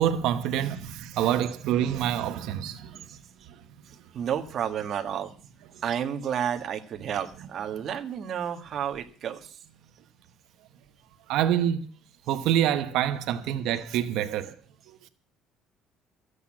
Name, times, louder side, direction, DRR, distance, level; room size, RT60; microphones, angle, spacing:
voice 1, 0.0-3.0 11.3-11.8 12.3-14.6 14.9-15.0, right 10 dB, 70° right, 1.1 m, -26 dB
voice 2, 3.1-3.5 3.9-5.3 5.8-9.6, right 9 dB, 40° right, 1.6 m, -31 dB
14.5 x 8.4 x 8.5 m
cardioid pair, 160°, 0 cm